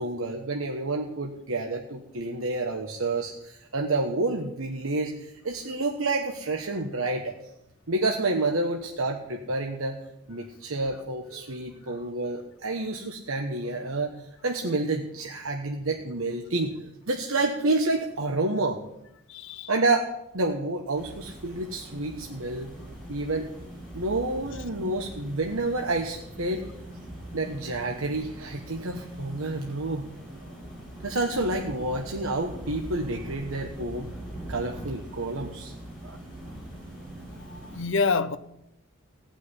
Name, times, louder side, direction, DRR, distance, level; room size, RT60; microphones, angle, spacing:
voice 1, 0.0-7.3 7.9-10.0 10.3-14.1 14.4-16.7 17.1-18.8 19.7-20.1 20.3-22.7 23.1-23.5 23.9-26.7 27.3-30.1 31.0-34.1 34.5-35.7 36.0-36.2, right 2 dB, 80° right, 2 dB, 1.3 m, -29 dB
voice 2, 19.3-19.7 37.5-38.4, left 4 dB, 60° left, 10 dB, 0.8 m, -27 dB
sound 1, 20.9-37.8, right 1 dB, 5° left, 6.0 m, -42 dB
17.5 x 6.0 x 9.8 m, 0.85 s
head